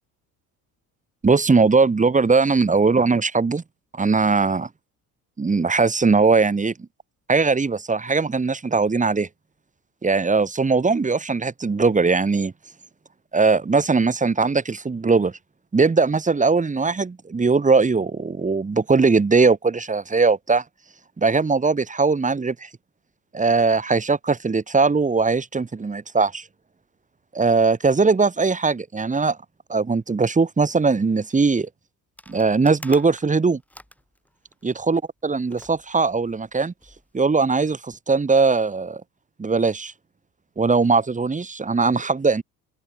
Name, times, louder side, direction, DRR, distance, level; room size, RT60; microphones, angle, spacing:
voice 1, 1.2-3.6 3.9-4.7 5.4-6.7 7.3-9.3 10.0-12.5 13.3-15.3 15.7-20.6 21.2-22.7 23.3-26.4 27.3-29.4 29.7-31.7 32.3-33.6 34.6-36.7 37.1-39.0 39.4-39.9 40.6-42.4, right 4 dB, 20° right, 1.6 m, -20 dB
sound 1, 32.2-34.8 35.5-37.1, left 1 dB, 5° left, 5.0 m, -46 dB
open air
cardioid pair, 95°, 39 cm